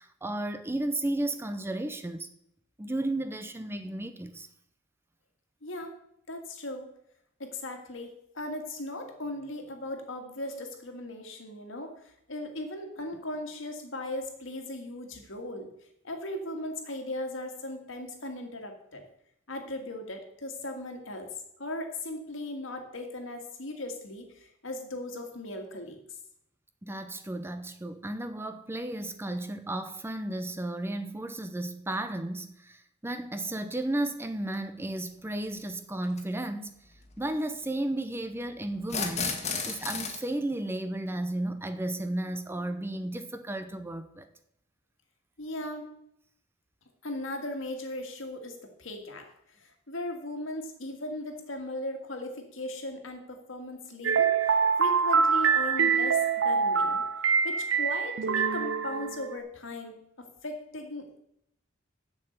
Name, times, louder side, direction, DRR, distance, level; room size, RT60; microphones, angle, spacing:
voice 1, 0.0-2.3 2.8-4.5 26.8-36.7 37.2-39.4 39.7-44.3, right 1 dB, 10° right, 0.6 m, -33 dB
voice 2, 5.6-5.9 6.3-6.9 7.4-11.9 12.3-15.7 16.0-19.0 19.5-21.3 21.6-26.0 45.4-45.8 47.0-49.3 49.6-57.0 57.4-61.2, left 1 dB, 75° left, 2.0 m, -38 dB
sound 1, 34.5-34.6 36.0-36.2 38.8-40.2, left 5 dB, 35° left, 1.5 m, -32 dB
sound 2, 54.0-59.4, right 6 dB, 75° right, 0.6 m, -25 dB
7.3 x 6.7 x 8.0 m
head